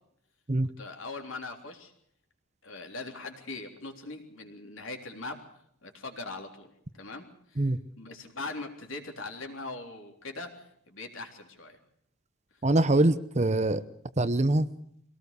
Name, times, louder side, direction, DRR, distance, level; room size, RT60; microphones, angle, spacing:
voice 1, 0.8-1.9 2.6-5.5 5.8-6.7 7.0-7.7 8.0-11.8, left 3 dB, 65° left, 4 dB, 3.7 m, -41 dB
voice 2, 12.6-13.8 14.2-14.7, right 2 dB, 30° right, 14 dB, 0.8 m, -24 dB
23.5 x 18.0 x 6.8 m, 0.68 s
head